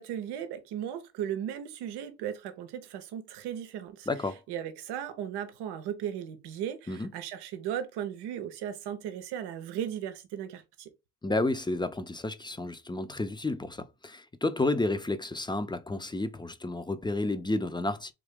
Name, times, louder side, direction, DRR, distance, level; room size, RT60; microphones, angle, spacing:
voice 1, 0.0-10.9, right 9 dB, 90° right, 0.7 m, -36 dB
voice 2, 4.1-4.4 6.9-7.1 11.2-18.1, left 2 dB, 10° left, 0.5 m, -31 dB
3.6 x 2.8 x 3.5 m
supercardioid pair, 55°, 39 cm